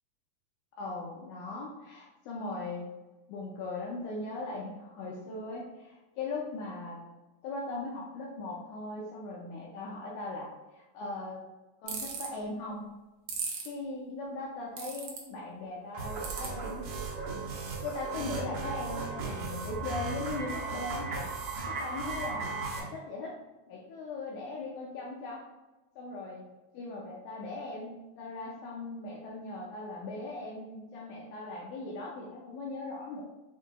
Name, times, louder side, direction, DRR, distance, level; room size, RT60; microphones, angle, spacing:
voice 1, 0.7-2.9 3.3-7.0 7.4-11.4 11.8-12.9 13.7-16.9 17.8-21.3 21.7-22.5 22.7-23.4 23.7-25.5 26.0-26.5 26.7-33.2, left 2 dB, 80° left, -3 dB, 1.8 m, -39 dB
sound 1, 11.9-12.3 13.3-13.7 14.8-15.2 16.2-16.5, right 6 dB, 90° right, 1.4 m, -35 dB
sound 2, 15.9-22.8, right 4 dB, 70° right, 1.7 m, -36 dB
5.9 x 2.7 x 2.4 m, 1.1 s
omnidirectional pair, 3.9 m